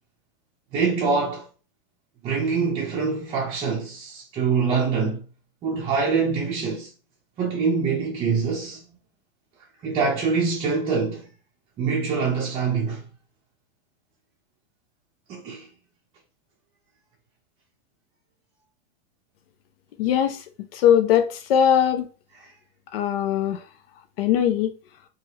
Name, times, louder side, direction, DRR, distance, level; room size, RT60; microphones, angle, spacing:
voice 1, 0.7-1.5 2.2-5.2 5.6-6.9 7.4-8.8 9.8-11.3 11.8-13.0 15.3-15.7 22.4-22.5, right 5 dB, 20° right, 0.5 m, -24 dB
voice 2, 20.0-20.4 20.7-22.1 22.9-23.6 24.2-24.7, left 9 dB, 80° left, 0.5 m, -20 dB
3.1 x 2.4 x 2.8 m
supercardioid pair, 165°, 29 cm